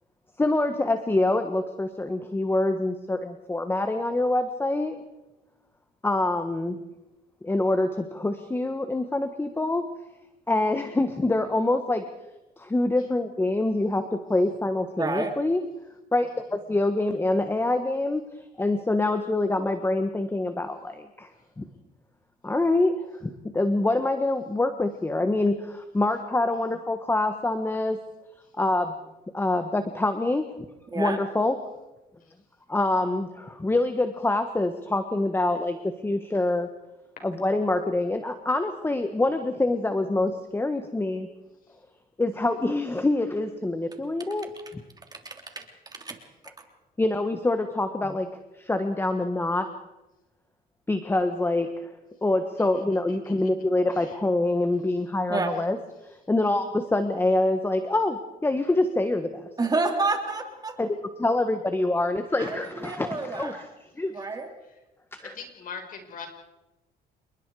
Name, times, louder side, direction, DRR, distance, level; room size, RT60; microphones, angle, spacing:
voice 1, 0.4-5.0 6.0-6.8 7.4-9.9 10.5-12.1 12.6-15.6 16.1-18.2 18.6-21.3 21.6-21.7 22.4-28.0 28.6-28.9 29.3-30.5 30.9-31.6 32.7-36.7 37.2-41.3 42.2-44.5 47.0-48.3 48.6-49.7 50.9-51.9 52.2-55.8 56.0-59.5 60.8-60.9 61.2-63.7 64.0-64.1 65.1-65.3, left 2 dB, 15° left, 8 dB, 1.4 m, -25 dB
voice 2, 15.0-15.3 30.9-31.2 44.6-44.7 45.1-46.2 46.6-46.7 55.3-55.5 59.6-60.8 62.4-63.6 64.1-64.5, right 3 dB, 25° right, 4 dB, 3.4 m, -29 dB
voice 3, 53.1-53.5 53.9-54.2 64.2-64.3 65.2-66.3, left 6 dB, 55° left, 4 dB, 5.1 m, -42 dB
28.0 x 21.5 x 4.9 m, 1.0 s
cardioid pair, 110°, 17 cm